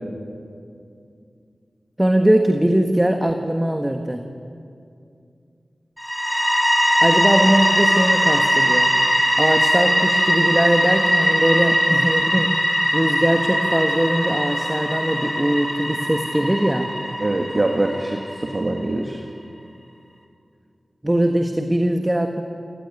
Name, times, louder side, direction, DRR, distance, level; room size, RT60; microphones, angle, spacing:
voice 1, 2.0-4.2 7.0-8.9 9.4-12.5 12.9-16.9 21.0-22.4, right 1 dB, 15° right, 4 dB, 1.5 m, -20 dB
sound 1, 6.0-18.7, equal, 5° left, 4.7 m, -20 dB
voice 2, 17.2-19.2, right 2 dB, 40° right, 2 dB, 1.9 m, -23 dB
28.0 x 16.5 x 9.8 m, 2.5 s
wide cardioid pair, 70°, 0 cm